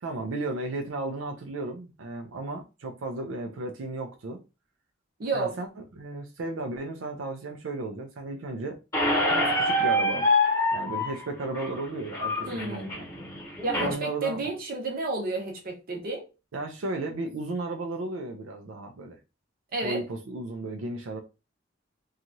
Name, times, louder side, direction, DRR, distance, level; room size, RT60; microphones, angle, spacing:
voice 1, 0.0-4.4 5.3-5.7 6.0-8.8 9.3-10.3 10.7-13.1 13.8-14.5 16.5-19.2 19.8-21.2, right 2 dB, 85° right, 0.5 m, -34 dB
voice 2, 5.2-5.5 12.5-12.9 13.6-16.3 19.7-20.0, right 3 dB, 50° right, 0.9 m, -31 dB
Squeak, 8.9-13.9, left 1 dB, 15° left, 1.0 m, -26 dB
2.9 x 2.4 x 2.6 m
head